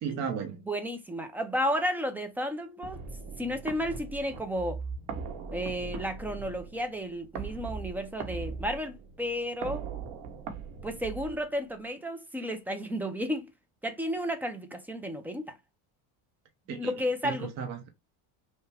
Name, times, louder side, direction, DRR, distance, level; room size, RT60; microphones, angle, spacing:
voice 1, 0.0-0.6 16.7-16.9 17.2-17.9, right 7 dB, 40° right, 0.7 m, -34 dB
voice 2, 0.7-3.0 3.4-4.8 5.5-9.8 10.8-13.5 13.8-15.5 16.7-17.5, equal, 5° right, 0.4 m, -32 dB
sound 1, 2.8-11.8, right 5 dB, 70° right, 1.2 m, -40 dB
5.7 x 2.1 x 3.4 m
cardioid pair, 170°, 39 cm